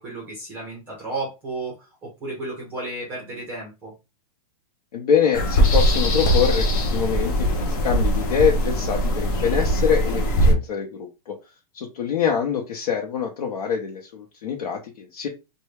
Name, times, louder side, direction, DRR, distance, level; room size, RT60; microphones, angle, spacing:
voice 1, 0.0-3.9, right 2 dB, 10° right, -2 dB, 0.8 m, -33 dB
voice 2, 4.9-11.4 11.7-15.3, left 7 dB, 90° left, 0 dB, 0.7 m, -25 dB
sound 1, 5.3-10.5, equal, 35° left, 0.7 m, -21 dB
3.2 x 2.2 x 3.3 m, 0.26 s
supercardioid pair, 175°, 19 cm